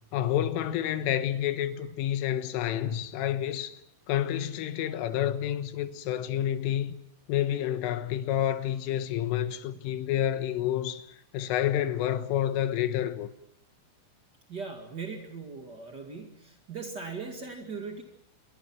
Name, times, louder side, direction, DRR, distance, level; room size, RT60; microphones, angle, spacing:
voice 1, 0.1-3.8 4.1-6.9 7.3-11.1 11.3-13.3, left 11 dB, 80° left, 3.8 m, -29 dB
voice 2, 14.5-18.0, right 4 dB, 55° right, 1.1 m, -39 dB
27.5 x 23.0 x 6.1 m
omnidirectional pair, 5.8 m